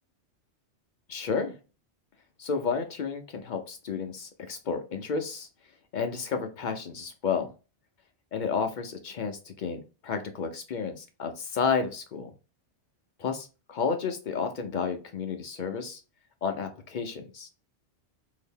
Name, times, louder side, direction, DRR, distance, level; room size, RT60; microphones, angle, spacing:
voice 1, 1.1-1.5 2.4-5.5 5.9-7.5 8.3-12.3 13.2-16.0 16.4-17.5, left 5 dB, 60° left, 6 dB, 0.5 m, -31 dB
2.8 x 2.7 x 3.5 m, 0.32 s
omnidirectional pair, 1.2 m